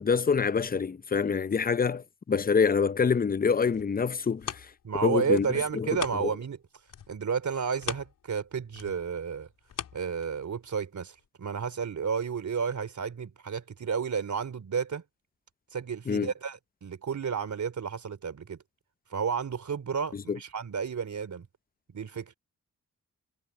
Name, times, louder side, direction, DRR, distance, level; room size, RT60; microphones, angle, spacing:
voice 1, 0.0-4.7 5.0-5.5 5.7-5.9 6.2-6.3 16.1-16.3 20.1-20.4, left 5 dB, 25° left, 0.6 m, -26 dB
sound 1, 3.7-6.6 6.9-10.7 11.2-11.3, left 9 dB, 75° left, 2.8 m, -42 dB
voice 2, 4.8-6.6 7.1-9.5 9.9-15.0 15.7-18.6 19.1-21.5 21.9-22.3, right 6 dB, 60° right, 3.5 m, -32 dB
supercardioid pair, 45°, 33 cm